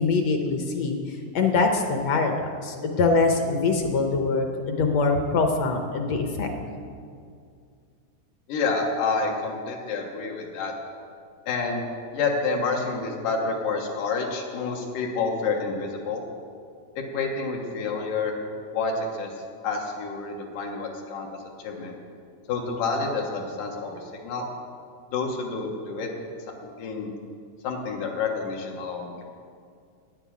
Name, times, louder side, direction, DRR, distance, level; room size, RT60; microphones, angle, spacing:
voice 1, 0.0-6.5, left 4 dB, 65° left, 4 dB, 1.8 m, -24 dB
voice 2, 8.5-10.7 11.5-11.8 12.1-16.2 17.0-18.3 18.7-19.3 19.6-21.3 21.6-22.0 22.5-24.4 25.1-26.1 26.8-27.1 27.6-29.2, left 4 dB, 85° left, 0 dB, 2.9 m, -28 dB
10.0 x 9.7 x 8.5 m, 2.3 s
omnidirectional pair, 3.7 m